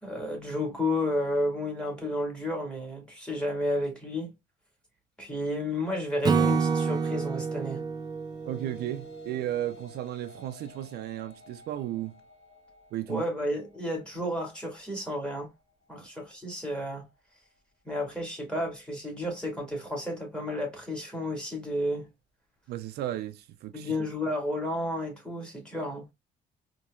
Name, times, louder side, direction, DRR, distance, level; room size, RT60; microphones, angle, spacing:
voice 1, 0.0-4.3 5.2-7.8 13.1-15.5 15.9-17.1 17.9-22.1 23.7-26.0, left 1 dB, 5° left, 1.9 m, -32 dB
Acoustic guitar / Strum, 6.2-9.6, right 5 dB, 25° right, 0.5 m, -28 dB
sound 1, 7.9-17.1, left 2 dB, 35° left, 1.8 m, -55 dB
voice 2, 8.5-12.2 12.9-13.2 16.0-16.1 22.7-23.9, right 12 dB, 75° right, 0.5 m, -34 dB
4.2 x 2.9 x 2.3 m
cardioid pair, 110°, 17 cm